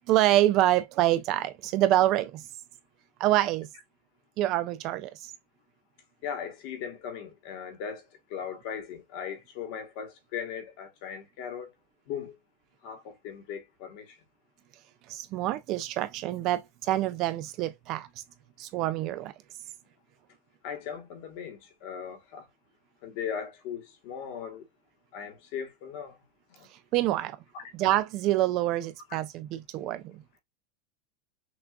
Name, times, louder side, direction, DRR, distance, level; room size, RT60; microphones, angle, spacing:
voice 1, 0.1-2.4 3.2-3.7 4.4-5.1 15.1-18.1 18.6-19.3 26.9-27.4 27.8-30.1, right 14 dB, 30° right, 0.3 m, -26 dB
voice 2, 6.2-11.7 12.1-12.4 12.8-14.1 20.6-22.5 23.0-24.7 25.1-26.2 26.5-26.7 27.5-27.7, left 7 dB, 40° left, 1.1 m, -38 dB
5.9 x 2.3 x 2.2 m
supercardioid pair, 180°, 0 cm